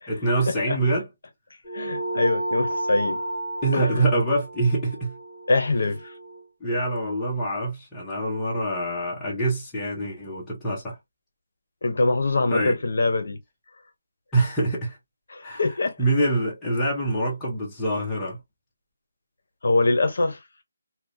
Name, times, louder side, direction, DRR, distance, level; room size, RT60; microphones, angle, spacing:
voice 1, 0.1-1.1 3.6-5.2 6.6-11.0 12.5-12.8 14.3-15.0 15.4-15.6 16.0-18.4, right 2 dB, 5° left, 0.5 m, -25 dB
sound 1, 1.6-6.5, right 1 dB, 30° left, 1.6 m, -32 dB
voice 2, 1.7-3.2 3.7-4.1 5.5-6.1 11.8-13.4 15.3-16.0 19.6-20.4, left 2 dB, 50° left, 0.7 m, -23 dB
2.8 x 2.1 x 2.4 m
hypercardioid pair, 180°, 0 cm